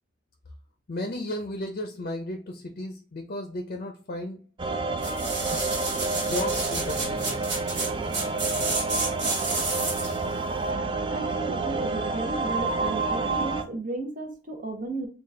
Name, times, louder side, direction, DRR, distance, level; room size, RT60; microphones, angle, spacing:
voice 1, 0.9-4.4 6.1-7.5, left 1 dB, 50° left, 4 dB, 0.5 m, -34 dB
sound 1, 4.6-13.6, right 3 dB, 30° right, 0.4 m, -29 dB
sound 2, 5.0-10.2 10.7-10.8, right 3 dB, 75° right, 1.4 m, -31 dB
voice 2, 11.1-15.1, right 2 dB, 45° right, 3 dB, 0.8 m, -34 dB
3.9 x 2.4 x 3.3 m, 0.33 s
head